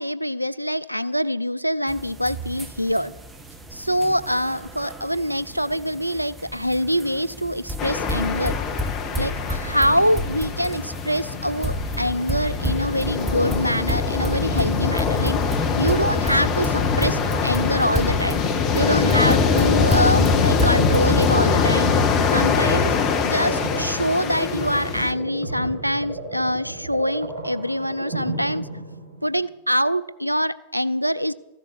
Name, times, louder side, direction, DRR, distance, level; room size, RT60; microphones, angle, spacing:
voice 1, 0.0-3.1 3.7-8.6 9.1-15.4 15.8-18.4 18.7-21.9 22.3-23.0 23.2-28.7 29.2-31.3, equal, 90° right, 17 dB, 0.4 m, -24 dB
sound 1, 1.9-21.4, right 1 dB, 15° right, 1.9 m, -31 dB
sound 2, 7.8-25.1, left 5 dB, 35° left, 1.5 m, -23 dB
sound 3, 18.5-29.4, right 1 dB, 65° right, 5.8 m, -33 dB
14.5 x 11.5 x 7.2 m, 1.0 s
figure-of-eight pair, 90°, 0 cm